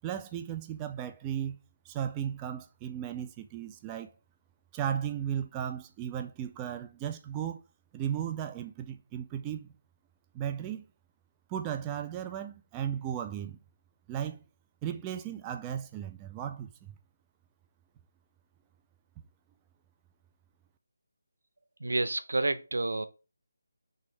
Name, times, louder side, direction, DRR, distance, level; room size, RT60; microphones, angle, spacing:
voice 1, 0.0-1.6 1.9-4.1 4.7-7.6 7.9-9.7 10.3-10.9 11.5-13.6 14.1-14.4 14.8-16.7, right 9 dB, 15° right, 0.3 m, -35 dB
voice 2, 21.8-23.1, right 2 dB, 80° right, 0.6 m, -29 dB
4.2 x 3.7 x 3.2 m
figure-of-eight pair, 160°, 0 cm